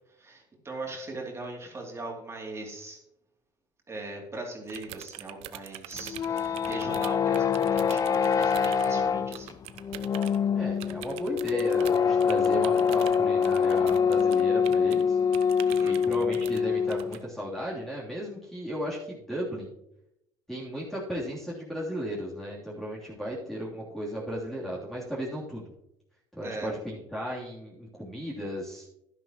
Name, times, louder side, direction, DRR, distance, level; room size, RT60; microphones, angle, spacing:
voice 1, 0.1-3.0 3.9-9.6 15.7-15.9 26.4-26.7, right 2 dB, 25° right, 0 dB, 2.9 m, -40 dB
sound 1, 4.7-8.9 9.3-10.4 10.8-15.0 15.3-16.6 16.9-17.2, right 15 dB, 70° right, 0.7 m, -44 dB
sound 2, 5.9-17.2, left 6 dB, 35° left, 0.5 m, -25 dB
voice 2, 10.5-15.2 15.8-19.7 20.5-25.6 26.3-28.9, equal, 5° left, -5 dB, 3.1 m, -35 dB
11.0 x 11.0 x 3.0 m, 0.82 s
supercardioid pair, 85°, 11 cm